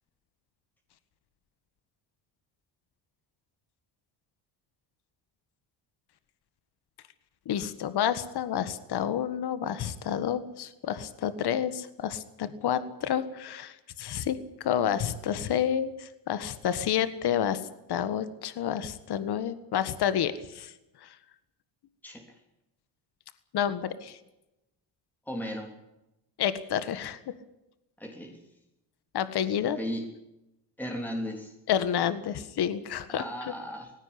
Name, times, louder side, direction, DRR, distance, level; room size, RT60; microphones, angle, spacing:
voice 1, 7.4-17.6 17.9-20.7 21.0-21.1 23.5-24.2 26.4-27.2 29.1-29.8 31.7-33.2, left 9 dB, 60° left, 13 dB, 1.7 m, -29 dB
voice 2, 25.3-25.7 28.0-28.4 29.8-30.1 30.8-31.5 33.1-33.9, equal, 5° left, 2 dB, 3.3 m, -35 dB
18.5 x 16.5 x 9.8 m, 0.92 s
cardioid pair, 115°, 43 cm